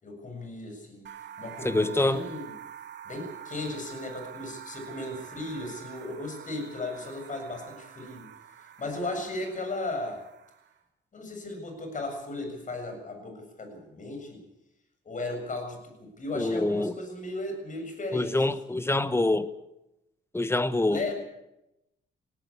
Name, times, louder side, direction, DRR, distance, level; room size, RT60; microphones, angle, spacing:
voice 1, 0.0-1.1 1.4-2.5 3.1-8.3 8.8-10.2 11.1-14.4 15.1-18.6 20.9-21.1, left 2 dB, 40° left, 5 dB, 7.2 m, -36 dB
sound 1, 1.0-10.8, right 9 dB, 65° right, 2.7 m, -46 dB
voice 2, 1.6-2.2 16.3-17.0 18.1-19.5 20.3-21.1, left 2 dB, 10° left, 14 dB, 1.2 m, -25 dB
18.5 x 17.5 x 8.6 m, 0.90 s
cardioid pair, 90°, 20 cm